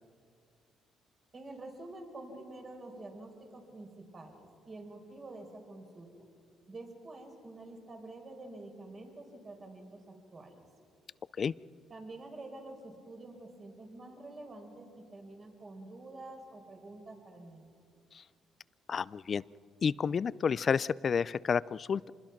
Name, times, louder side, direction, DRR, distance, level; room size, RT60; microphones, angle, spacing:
voice 1, 1.3-6.1 6.7-10.6 11.9-17.7, right 2 dB, 40° right, 3 dB, 4.7 m, -48 dB
voice 2, 18.9-19.4 19.8-22.1, left 6 dB, 45° left, 20 dB, 0.4 m, -30 dB
26.0 x 20.5 x 5.9 m, 2.3 s
supercardioid pair, 75°, 0 cm